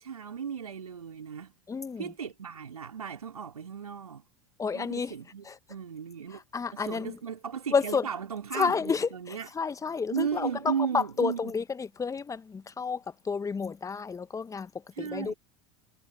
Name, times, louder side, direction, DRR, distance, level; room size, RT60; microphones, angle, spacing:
voice 1, 0.0-1.5 2.0-4.2 4.7-6.4 6.7-9.5 10.1-11.5 14.9-15.3, right 7 dB, 75° right, 3.0 m, -35 dB
voice 2, 1.7-2.1 4.6-5.1 5.5-5.6 6.3-7.2 7.7-8.1 8.5-14.7 15.0-15.3, left 5 dB, 15° left, 1.7 m, -30 dB
figure-of-eight pair, 75°, 19 cm